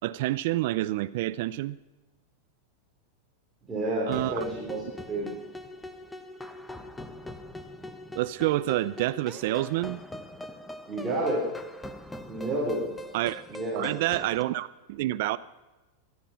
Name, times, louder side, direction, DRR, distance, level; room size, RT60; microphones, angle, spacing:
voice 1, 0.0-1.8 4.0-4.4 8.1-10.0 13.1-13.4 13.8-15.4, right 16 dB, 55° right, 13 dB, 0.5 m, -28 dB
voice 2, 3.7-4.8 5.1-5.3 10.9-11.5 12.3-12.8 13.5-13.9, right 1 dB, 10° right, -5 dB, 3.7 m, -29 dB
sound 1, 4.1-14.4, left 1 dB, 5° left, 0.9 m, -42 dB
19.5 x 12.5 x 5.8 m, 1.1 s
supercardioid pair, 160°, 0 cm